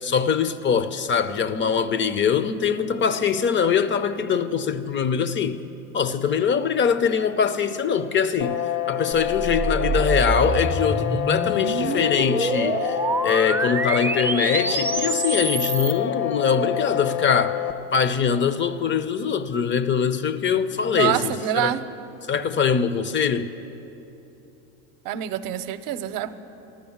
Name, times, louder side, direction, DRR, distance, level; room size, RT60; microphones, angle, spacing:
voice 1, 0.0-5.6 5.9-8.6 8.9-13.0 13.2-17.6 17.9-21.7 22.3-23.5, left 6 dB, 30° left, 0.7 m, -23 dB
sound 1, 8.4-17.7, left 11 dB, 60° left, 1.3 m, -27 dB
sound 2, 9.1-16.0, right 3 dB, 5° right, 0.6 m, -27 dB
voice 2, 20.9-21.8 25.0-26.4, right 12 dB, 55° right, 0.8 m, -26 dB
13.5 x 13.0 x 7.2 m
supercardioid pair, 95°, 39 cm